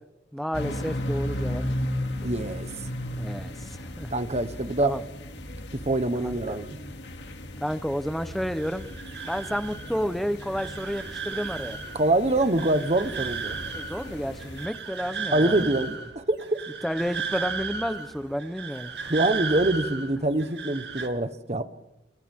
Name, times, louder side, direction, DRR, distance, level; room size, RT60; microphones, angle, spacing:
voice 1, 0.3-1.6 3.2-4.1 4.8-5.0 6.2-6.6 7.6-8.9 9.2-11.8 13.7-15.6 16.8-18.9, equal, ahead, 0.9 m, -31 dB
sound 1, 0.5-14.7, left 1 dB, 80° left, 2.5 m, -35 dB
voice 2, 2.2-2.7 4.1-5.0 5.8-6.7 11.9-13.6 15.3-16.5 19.1-21.7, right 2 dB, 40° right, 1.2 m, -25 dB
sound 2, 8.5-21.1, right 5 dB, 70° right, 2.4 m, -35 dB
30.0 x 27.0 x 3.7 m
head